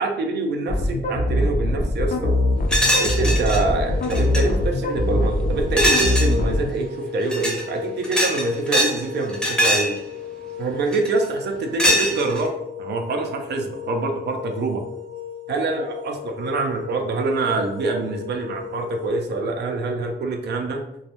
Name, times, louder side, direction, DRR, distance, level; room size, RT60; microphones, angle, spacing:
voice 1, 0.0-2.3 3.0-10.0 10.6-12.5 12.8-14.8 15.5-20.8, right 3 dB, 75° right, 4 dB, 0.4 m, -25 dB
sound 1, 0.7-6.7, left 1 dB, 55° left, 0.5 m, -22 dB
sound 2, 1.9-19.1, left 10 dB, 75° left, 0.8 m, -36 dB
sound 3, 2.7-3.6 4.0-4.4 5.8-6.3 7.2-7.6 8.0-9.0 9.3-9.9 10.9-11.2 11.8-12.5, equal, 5° left, 0.6 m, -21 dB
2.2 x 2.0 x 2.8 m, 0.85 s
cardioid pair, 80°, 18 cm